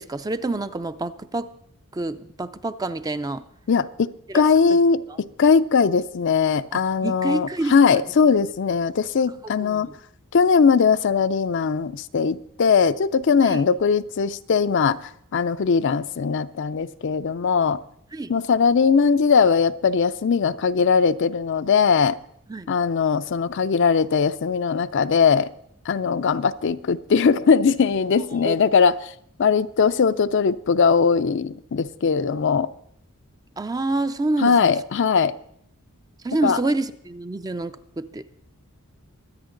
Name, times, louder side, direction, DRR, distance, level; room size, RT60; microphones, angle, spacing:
voice 1, 0.0-1.5 1.9-3.4 4.3-4.4 4.7-4.8 5.1-5.2 6.7-8.0 9.6-9.9 13.4-13.6 18.1-18.4 22.5-22.7 28.3-28.6 33.6-34.7 36.2-38.2, right 2 dB, 15° right, 0.4 m, -28 dB
voice 2, 3.7-4.1 4.3-9.9 10.3-17.8 18.3-22.2 22.7-25.5 25.9-29.0 29.4-32.7 34.4-35.3 36.4-36.6, left 5 dB, 55° left, 0.4 m, -20 dB
23.5 x 8.9 x 3.8 m
head